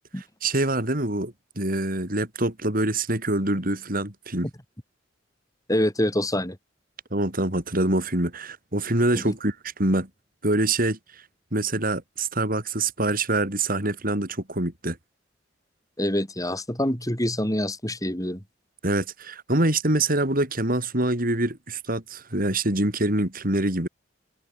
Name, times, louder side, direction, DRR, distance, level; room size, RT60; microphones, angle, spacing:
voice 1, 0.2-4.5 7.1-10.1 10.4-11.0 11.5-15.0 18.8-23.9, right 2 dB, 50° right, 6.4 m, -25 dB
voice 2, 5.7-6.6 9.1-9.3 16.0-18.4, left 1 dB, 20° left, 6.0 m, -26 dB
head